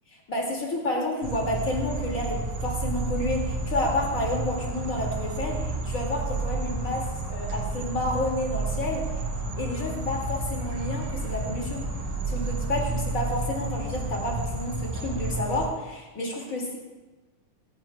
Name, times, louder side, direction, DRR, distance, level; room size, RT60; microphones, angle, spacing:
voice 1, 0.3-9.0 9.6-11.8 12.3-16.8, left 1 dB, 30° left, -1 dB, 2.5 m, -30 dB
sound 1, 1.2-15.7, right 2 dB, 75° right, 3.5 m, -31 dB
17.0 x 14.5 x 2.3 m, 1.2 s
omnidirectional pair, 3.3 m